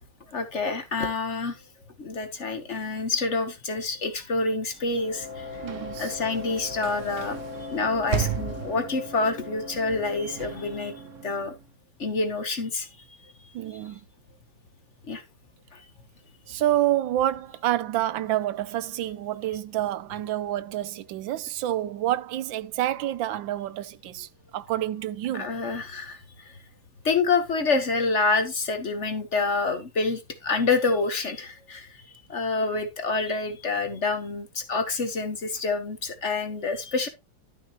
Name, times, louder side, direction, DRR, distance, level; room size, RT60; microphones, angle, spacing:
voice 1, 0.3-1.6 2.0-5.5 6.0-7.4 7.7-10.9 11.2-11.5 12.0-12.9 15.1-15.2 25.4-26.2 27.0-31.9 32.3-37.1, left 3 dB, 45° left, 1.3 m, -27 dB
Sliding door / Slam, 4.7-11.7, right 9 dB, 55° right, 1.0 m, -36 dB
sound 1, 4.9-11.5, left 9 dB, 70° left, 1.8 m, -41 dB
voice 2, 5.6-6.2 13.5-14.0 16.5-25.5, right 13 dB, 90° right, 1.4 m, -28 dB
12.5 x 6.1 x 2.9 m
omnidirectional pair, 2.0 m